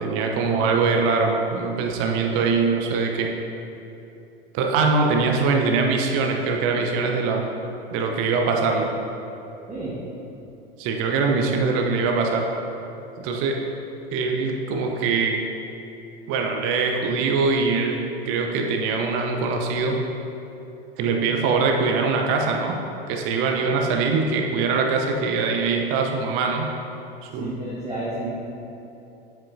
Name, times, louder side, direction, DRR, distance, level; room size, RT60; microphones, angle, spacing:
voice 1, 0.0-3.3 4.5-7.5 7.9-8.9 10.8-12.5 13.2-13.6 14.1-15.4 16.3-18.0 18.2-20.0 21.0-22.8 23.1-26.7 27.2-27.6, right 4 dB, 45° right, 2 dB, 0.9 m, -22 dB
voice 2, 27.4-28.3, right 1 dB, 20° right, -9 dB, 1.6 m, -31 dB
8.1 x 7.4 x 2.7 m, 2.9 s
figure-of-eight pair, 85°, 30 cm